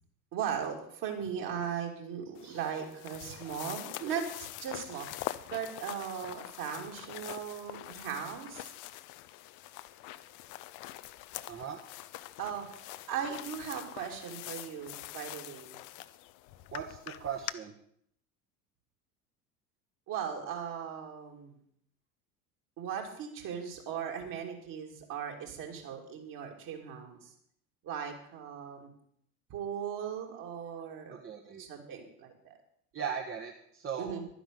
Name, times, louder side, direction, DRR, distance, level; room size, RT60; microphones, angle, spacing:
voice 1, 0.3-8.7 12.4-15.7 20.1-21.6 22.8-27.3 27.8-28.9 29.5-31.1 31.6-32.5 34.0-34.3, right 8 dB, 45° right, 2 dB, 3.1 m, -38 dB
sound 1, 2.4-17.5, left 16 dB, 40° left, 0.7 m, -44 dB
voice 2, 11.5-11.8 16.7-17.7 31.1-31.6 32.9-34.2, right 7 dB, 30° right, 2 dB, 1.4 m, -38 dB
12.0 x 10.0 x 6.7 m, 0.69 s
figure-of-eight pair, 70°, 46 cm